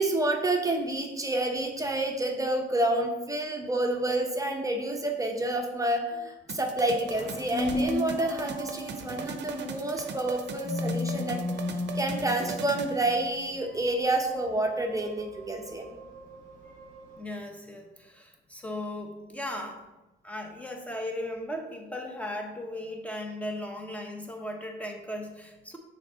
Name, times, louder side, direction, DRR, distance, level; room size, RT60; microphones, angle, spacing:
voice 1, 0.0-11.4 11.7-15.9, right 1 dB, 15° right, 2 dB, 0.8 m, -29 dB
sound 1, 6.5-13.0, right 6 dB, 60° right, 0.6 m, -39 dB
sound 2, 6.9-17.2, left 2 dB, 90° left, 2.0 m, -36 dB
voice 2, 17.2-19.8 20.2-25.8, left 1 dB, 5° left, 2 dB, 1.1 m, -37 dB
6.3 x 3.7 x 4.3 m, 1.0 s
cardioid pair, 90°, 20 cm